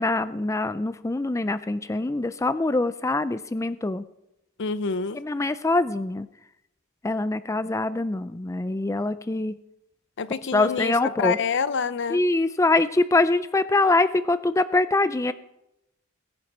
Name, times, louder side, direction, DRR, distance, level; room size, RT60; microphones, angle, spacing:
voice 1, 0.0-4.0 5.2-6.3 7.0-9.6 10.5-11.4 12.1-15.3, left 2 dB, 15° left, 13 dB, 0.4 m, -24 dB
voice 2, 4.6-5.2 10.2-12.2, left 5 dB, 60° left, 15 dB, 0.6 m, -27 dB
20.0 x 7.9 x 5.4 m, 0.86 s
head